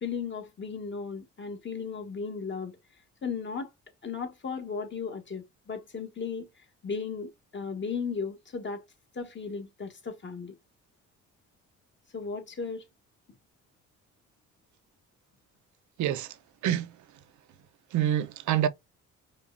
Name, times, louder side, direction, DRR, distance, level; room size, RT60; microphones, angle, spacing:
voice 1, 0.0-2.7 3.2-3.7 4.0-6.5 6.8-8.8 9.1-10.5 12.1-12.8, left 5 dB, 40° left, 1.5 m, -35 dB
voice 2, 16.0-16.4 16.6-17.0 17.9-18.7, right 11 dB, 70° right, 0.6 m, -27 dB
5.2 x 2.3 x 2.5 m
cardioid pair, 90°, 30 cm